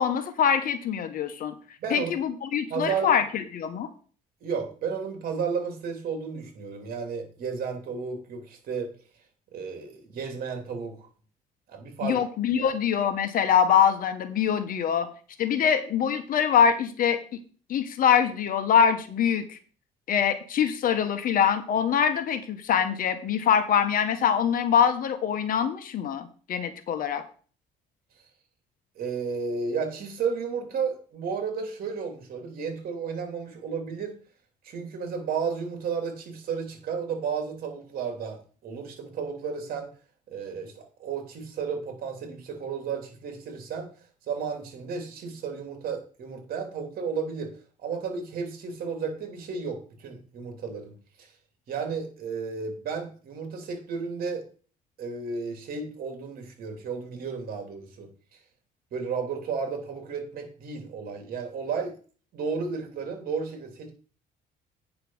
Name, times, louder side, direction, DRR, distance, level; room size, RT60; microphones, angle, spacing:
voice 1, 0.0-1.5 1.9-3.9 12.0-15.1 15.4-17.2 17.7-19.6 20.1-27.2, left 8 dB, 55° left, 8 dB, 1.4 m, -24 dB
voice 2, 1.8-2.2 2.7-3.1 4.4-8.9 9.5-11.1 11.7-12.2 12.6-12.7 29.0-34.1 34.6-39.9 40.3-43.9 44.3-47.5 47.8-51.0 51.7-54.4 55.0-58.1 58.9-62.0 62.3-63.9, right 5 dB, 60° right, 5 dB, 2.9 m, -33 dB
9.2 x 5.6 x 5.6 m, 0.40 s
cardioid pair, 110°, 17 cm